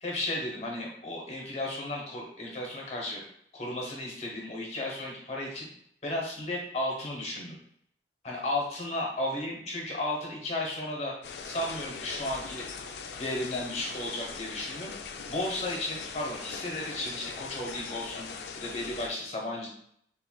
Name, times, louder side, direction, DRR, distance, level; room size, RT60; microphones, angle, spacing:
voice 1, 0.0-3.2 3.5-5.7 6.0-7.6 8.2-11.1 11.4-12.6 13.2-14.9 15.3-18.3 18.6-19.7, left 1 dB, 40° left, -2 dB, 1.1 m, -34 dB
sound 1, 11.2-19.1, left 5 dB, 70° left, 0.4 m, -41 dB
4.6 x 3.2 x 2.3 m, 0.69 s
head